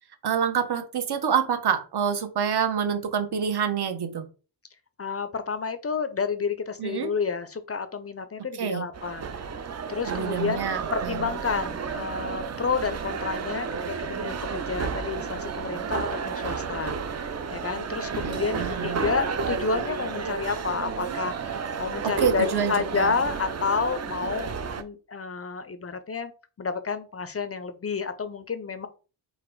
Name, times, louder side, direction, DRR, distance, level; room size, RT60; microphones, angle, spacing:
voice 1, 0.2-4.3 6.8-7.1 8.6-8.9 10.1-11.3 18.2-19.0 22.0-23.1, right 7 dB, 55° right, 8 dB, 0.8 m, -27 dB
voice 2, 5.0-9.3 9.9-10.7 10.9-17.2 17.5-24.5 24.8-26.3 26.6-28.9, left 5 dB, 30° left, 11 dB, 0.4 m, -30 dB
sound 1, 8.9-24.8, right 5 dB, 35° right, 0.4 m, -32 dB
4.0 x 2.5 x 4.5 m, 0.34 s
wide cardioid pair, 135°, 49 cm